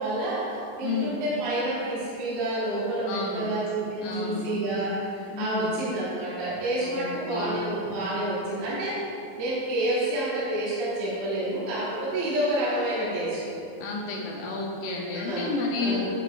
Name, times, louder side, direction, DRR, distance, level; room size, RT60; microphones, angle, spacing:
voice 1, 0.0-9.1 9.3-13.4 15.1-15.5 15.8-16.1, right 1 dB, 60° right, -9 dB, 2.5 m, -29 dB
voice 2, 0.8-1.2 3.0-3.5 4.0-4.4 5.3-5.7 6.8-7.6 13.8-16.0, left 4 dB, 75° left, -1 dB, 2.3 m, -31 dB
8.8 x 6.5 x 2.5 m, 2.6 s
omnidirectional pair, 3.9 m